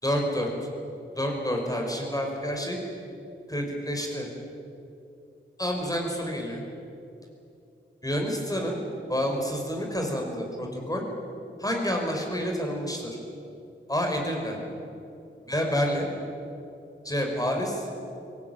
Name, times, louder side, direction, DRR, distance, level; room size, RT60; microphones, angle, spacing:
voice 1, 0.0-0.5 1.2-2.8 3.5-4.3 5.6-6.6 8.0-8.8 9.1-11.0 11.6-13.1 13.9-14.6 15.4-16.1 17.0-17.9, equal, 15° left, 1 dB, 5.4 m, -28 dB
24.0 x 17.5 x 9.3 m, 2.7 s
wide cardioid pair, 65°, 21 cm